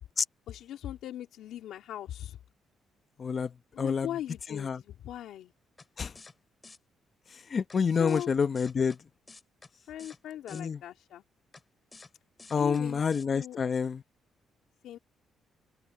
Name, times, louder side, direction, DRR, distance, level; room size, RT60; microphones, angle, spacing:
voice 1, 0.5-2.4 3.7-5.5 8.0-8.3 9.9-11.2 12.6-13.6 14.8-15.0, left 11 dB, 80° left, 3.0 m, -39 dB
voice 2, 3.2-3.5 3.8-4.1 4.5-4.8 6.0-6.1 7.5-9.0 10.5-10.8 12.5-14.0, left 6 dB, 45° left, 1.0 m, -28 dB
sound 1, 5.8-5.9 6.1-6.3 6.6-6.8 7.7-7.8 8.1-8.3 8.5-9.0 9.3-9.7 10.0-10.2 10.5-10.6 11.5-11.6 11.9-12.1 12.4-12.8 13.1-13.2, left 3 dB, 25° left, 5.1 m, -50 dB
open air
cardioid pair, 90°, 0 cm